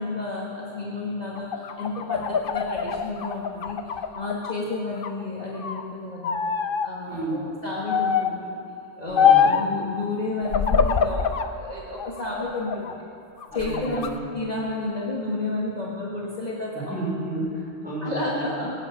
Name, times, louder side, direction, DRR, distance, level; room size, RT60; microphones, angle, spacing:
voice 1, 0.0-3.8 4.1-6.4 6.8-8.5 9.0-13.0 13.5-16.7 17.4-17.5 18.0-18.7, left 2 dB, 35° left, -6 dB, 1.9 m, -31 dB
sound 1, 1.4-4.6 5.0-5.8 6.2-6.9 7.9-8.4 9.2-9.7 10.4-11.5 12.0-12.9 13.4-14.1, left 7 dB, 55° left, 0.8 m, -23 dB
voice 2, 7.1-7.5 9.1-9.5 13.5-14.3 16.7-18.7, right 1 dB, 5° right, -6 dB, 4.6 m, -32 dB
23.5 x 8.8 x 5.9 m, 2.9 s
omnidirectional pair, 1.2 m